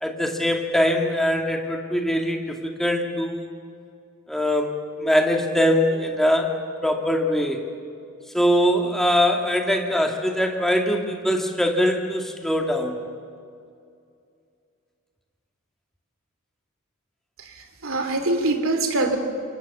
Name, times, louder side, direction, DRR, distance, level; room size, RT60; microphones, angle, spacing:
voice 1, 0.0-3.5 4.3-6.5 6.8-7.6 8.3-13.0, equal, ahead, 2 dB, 2.3 m, -22 dB
voice 2, 17.4-19.2, right 2 dB, 70° right, 6 dB, 3.0 m, -24 dB
27.5 x 24.0 x 7.0 m, 2.4 s
head